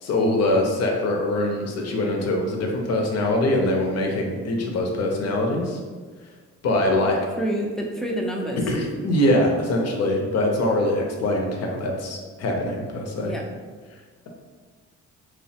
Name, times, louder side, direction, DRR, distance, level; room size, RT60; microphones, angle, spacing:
voice 1, 0.0-5.8 6.6-7.2 8.6-13.3, left 1 dB, 55° left, 1 dB, 0.6 m, -23 dB
voice 2, 7.1-8.7 13.2-13.5, equal, ahead, 0 dB, 0.3 m, -28 dB
3.0 x 2.1 x 2.8 m, 1.5 s
cardioid pair, 90°, 30 cm